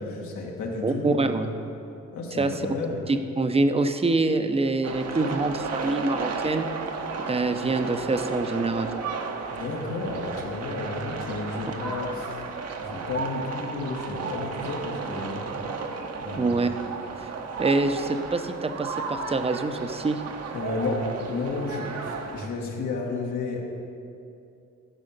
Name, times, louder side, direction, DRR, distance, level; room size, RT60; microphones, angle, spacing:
voice 1, 0.0-1.5 2.1-3.0 9.5-12.4 12.8-15.5 16.2-16.7 20.5-21.0 21.3-23.7, left 3 dB, 80° left, -1 dB, 1.9 m, -32 dB
voice 2, 0.8-1.5 2.3-2.5 3.1-6.7 7.3-8.9 16.4-16.7 17.2-17.3 17.6-20.2, right 3 dB, 20° right, 8 dB, 0.7 m, -25 dB
sound 1, 4.8-22.5, right 4 dB, 55° right, 1.0 m, -33 dB
13.5 x 4.9 x 6.6 m, 2.6 s
cardioid pair, 90°, 30 cm